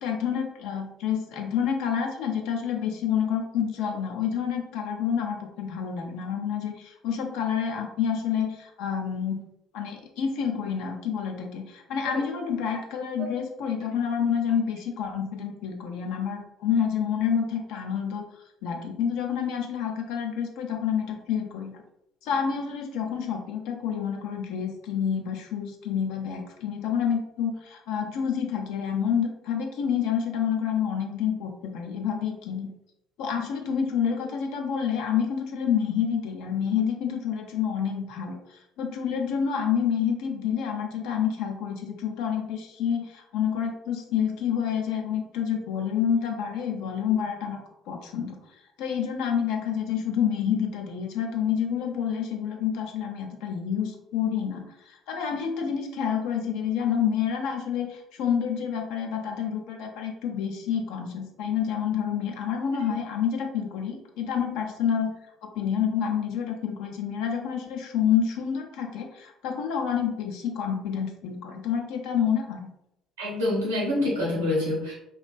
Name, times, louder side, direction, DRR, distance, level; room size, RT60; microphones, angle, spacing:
voice 1, 0.0-9.4 9.7-18.2 18.6-21.7 22.2-32.7 33.2-47.6 47.9-48.4 48.8-65.1 65.4-72.7, left 8 dB, 70° left, 2 dB, 0.4 m, -28 dB
voice 2, 73.2-75.0, left 1 dB, 85° right, -4 dB, 0.8 m, -26 dB
2.5 x 2.3 x 2.2 m, 0.84 s
figure-of-eight pair, 50°, 0 cm